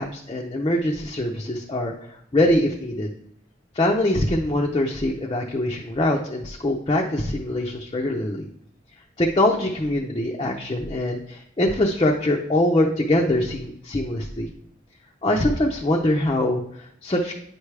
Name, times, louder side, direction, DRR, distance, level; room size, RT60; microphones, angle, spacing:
voice 1, 0.0-1.9 2.3-3.1 3.7-8.5 9.2-14.5 15.2-17.3, left 1 dB, 25° left, -1 dB, 0.5 m, -23 dB
9.0 x 4.7 x 3.3 m, 0.72 s
head